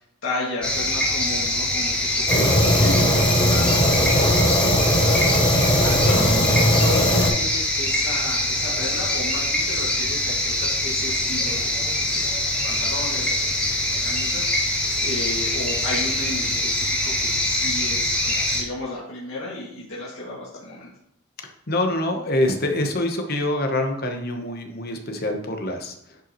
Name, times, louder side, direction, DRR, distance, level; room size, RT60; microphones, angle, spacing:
voice 1, 0.2-12.4 12.6-20.9, left 2 dB, 65° left, -7 dB, 2.2 m, -33 dB
sound 1, 0.6-18.6, left 1 dB, 5° left, 1.3 m, -24 dB
Fire, 2.3-7.3, equal, 25° left, 2.8 m, -19 dB
voice 2, 21.4-26.2, left 1 dB, 45° left, 4 dB, 1.0 m, -26 dB
10.5 x 5.5 x 3.1 m, 0.73 s
head